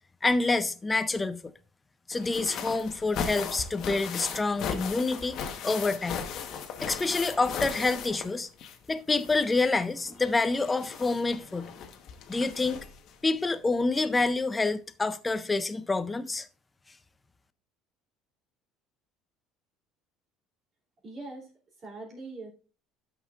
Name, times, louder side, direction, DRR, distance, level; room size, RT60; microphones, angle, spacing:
voice 1, 0.2-1.5 2.1-5.4 5.6-6.2 6.8-8.5 8.9-11.7 12.3-12.9 13.2-16.5, left 3 dB, 10° left, 0.5 m, -27 dB
sound 1, 2.1-8.9 9.2-13.1 14.2-14.3 14.6-14.7, left 7 dB, 45° left, 1.1 m, -38 dB
voice 2, 21.0-21.5 21.8-22.5, right 3 dB, 30° right, 3.0 m, -41 dB
12.5 x 6.3 x 2.4 m
cardioid pair, 170°, 0 cm